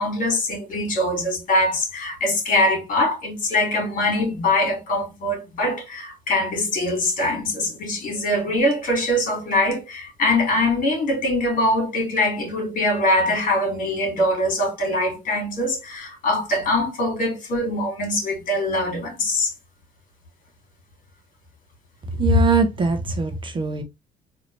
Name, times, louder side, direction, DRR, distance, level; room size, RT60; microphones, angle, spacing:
voice 1, 0.0-19.5, left 1 dB, 50° left, 2.6 m, -23 dB
voice 2, 22.2-23.8, right 2 dB, 30° right, 0.9 m, -20 dB
3.9 x 2.9 x 3.2 m
cardioid pair, 110°, 17 cm